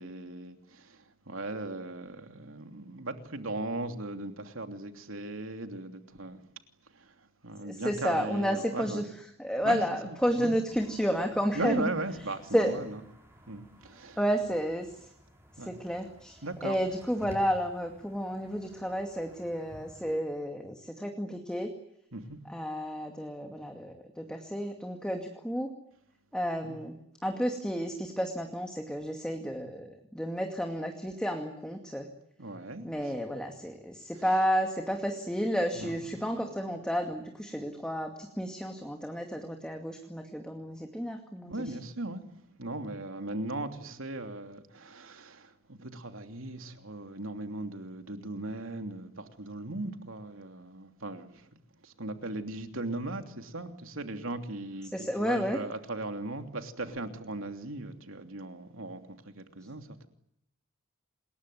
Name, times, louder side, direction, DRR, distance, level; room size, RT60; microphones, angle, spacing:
voice 1, 0.0-6.4 6.9-9.1 9.6-10.6 11.5-13.0 13.5-14.2 15.6-15.7 16.4-16.8 22.1-22.4 26.6-26.8 32.4-32.9 34.1-34.2 35.7-36.4 41.4-42.2 42.6-51.5 51.8-60.1, right 2 dB, 80° right, 3.0 m, -38 dB
voice 2, 7.6-9.0 9.4-11.9 12.5-12.9 14.2-14.9 15.6-21.7 22.5-25.7 26.3-27.0 27.2-32.1 32.8-41.7 54.9-55.6, equal, 5° left, 2.3 m, -31 dB
sound 1, 10.7-20.2, equal, 10° right, 6.6 m, -54 dB
28.0 x 21.5 x 9.4 m
head